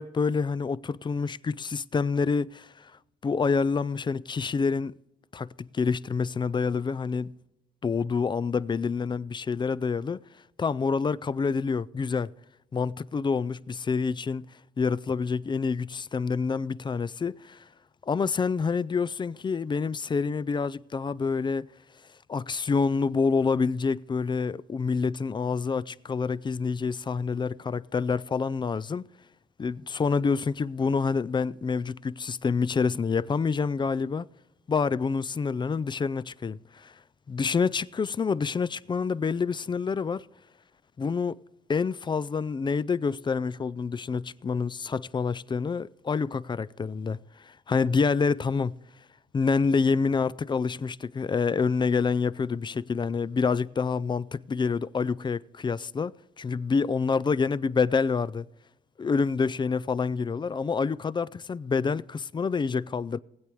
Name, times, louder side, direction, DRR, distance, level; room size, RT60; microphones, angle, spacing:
voice 1, 0.0-2.9 3.2-5.0 5.3-7.3 7.8-10.2 10.6-12.3 12.7-14.5 14.8-17.6 18.1-21.7 22.3-29.1 29.6-34.3 34.7-36.9 37.3-40.3 41.0-41.4 41.7-47.2 47.4-48.7 49.3-56.1 56.4-58.5 59.0-63.2, left 5 dB, 25° left, 0.3 m, -27 dB
19.5 x 8.3 x 3.1 m
cardioid pair, 90°, 20 cm